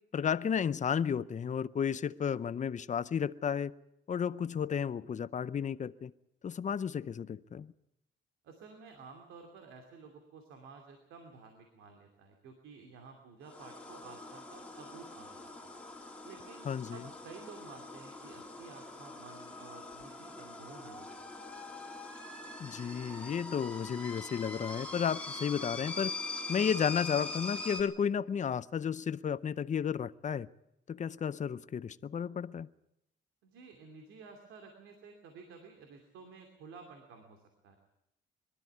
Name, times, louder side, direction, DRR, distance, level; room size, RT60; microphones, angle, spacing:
voice 1, 0.1-3.7 4.1-6.1 6.4-7.7 16.6-17.0 22.6-26.1 26.5-30.5 30.9-32.7, left 7 dB, 40° left, 0.7 m, -33 dB
voice 2, 8.4-15.8 16.2-21.3 33.4-37.8, right 5 dB, 90° right, 2.7 m, -53 dB
sound 1, 13.4-27.8, left 3 dB, 5° left, 3.5 m, -43 dB
22.0 x 13.0 x 9.4 m
cardioid pair, 90°, 20 cm